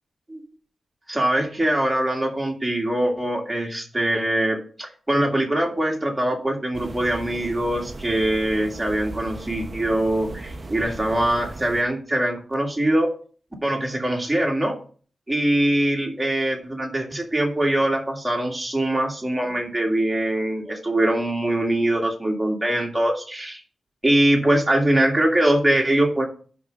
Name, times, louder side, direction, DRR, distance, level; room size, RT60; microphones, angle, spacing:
voice 1, 1.1-13.1 13.6-14.8 15.3-23.6 24.0-26.2, right 1 dB, 10° right, 0 dB, 1.9 m, -22 dB
sound 1, 6.7-11.8, right 2 dB, 35° right, 0.7 m, -37 dB
10.5 x 3.6 x 5.0 m, 0.42 s
wide cardioid pair, 130°, 0 cm